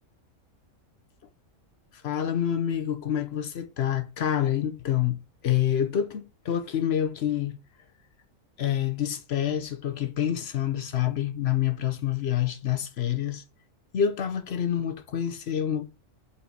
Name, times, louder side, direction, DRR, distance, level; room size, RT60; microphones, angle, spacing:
voice 1, 2.0-5.2 5.4-7.6 8.6-13.4 13.9-15.8, left 10 dB, 60° left, 0.9 m, -27 dB
5.7 x 4.2 x 4.6 m
omnidirectional pair, 1.3 m